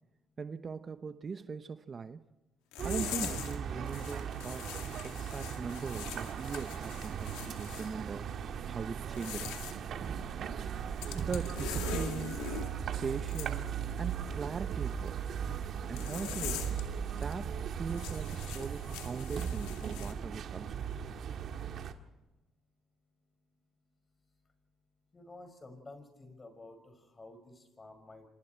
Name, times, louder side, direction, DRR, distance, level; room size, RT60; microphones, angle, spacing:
voice 1, 0.4-2.2 2.8-4.7 5.0-9.6 11.1-12.4 13.0-15.2 15.9-16.7 17.2-20.9, right 5 dB, 40° right, 11 dB, 1.0 m, -40 dB
sound 1, 2.7-3.6 3.9-7.9 9.0-9.8 11.0-12.7 13.3-13.5 16.0-16.8 17.2-17.3 17.9-20.1, left 10 dB, 85° left, 2.2 m, -42 dB
sound 2, 2.8-21.9, right 8 dB, 60° right, 1.8 m, -38 dB
voice 2, 25.1-28.3, left 2 dB, 30° left, 7 dB, 5.9 m, -51 dB
28.0 x 25.0 x 4.6 m, 1.1 s
supercardioid pair, 65°, 0 cm